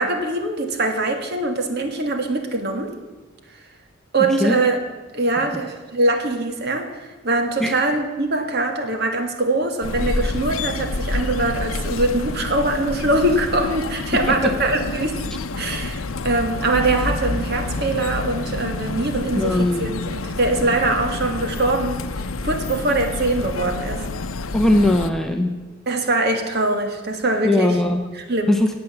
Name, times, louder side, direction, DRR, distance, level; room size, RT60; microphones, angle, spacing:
voice 1, 0.0-2.9 4.1-4.8 5.1-15.2 15.6-22.0 22.4-24.0 25.9-27.8 28.1-28.6, right 2 dB, 50° right, 5 dB, 1.6 m, -22 dB
sound 1, 9.8-25.1, left 2 dB, 80° left, 0.7 m, -28 dB
voice 2, 19.4-19.9 24.5-25.5 27.4-28.0 28.5-28.7, left 1 dB, ahead, 3 dB, 0.8 m, -19 dB
16.0 x 8.0 x 7.0 m, 1.2 s
head